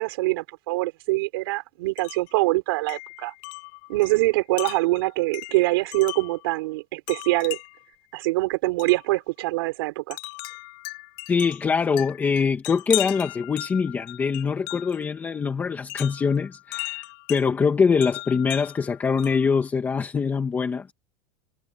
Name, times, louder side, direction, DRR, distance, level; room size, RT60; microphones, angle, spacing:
voice 1, 0.0-3.3 3.9-7.6 8.1-10.2, right 21 dB, 75° right, 5.3 m, -24 dB
Wind chime, 2.0-2.3 2.9-6.5 7.1-7.9 8.8-9.0 10.1-15.0 15.9-17.4 18.0-19.5, left 35 dB, 55° left, 7.4 m, -36 dB
voice 2, 11.3-20.9, left 5 dB, 15° left, 2.0 m, -23 dB
supercardioid pair, 170°, 12 cm